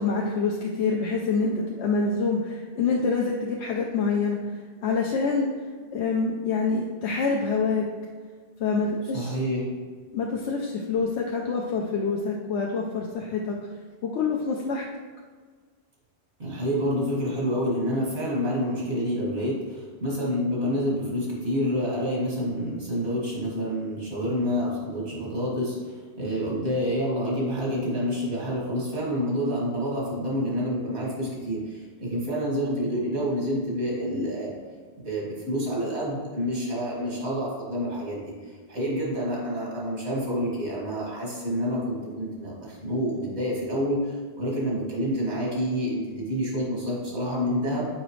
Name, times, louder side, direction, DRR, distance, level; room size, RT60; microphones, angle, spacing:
voice 1, 0.0-5.5 5.9-7.9 8.6-9.4 10.1-13.7 14.0-14.8, left 4 dB, 90° left, 0 dB, 0.9 m, -26 dB
voice 2, 9.1-9.7 16.4-34.5 35.0-47.8, equal, 85° right, -5 dB, 2.2 m, -28 dB
6.9 x 4.9 x 3.1 m, 1.5 s
omnidirectional pair, 1.1 m